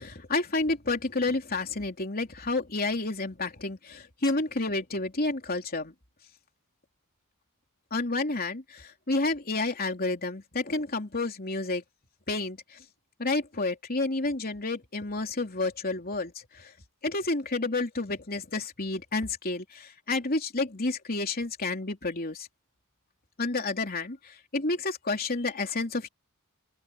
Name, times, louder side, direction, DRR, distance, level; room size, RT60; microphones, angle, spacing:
voice 1, 0.0-5.9 7.9-11.8 12.3-12.8 13.2-16.7 17.0-22.5 23.4-26.1, left 3 dB, 40° left, 3.4 m, -30 dB
open air
head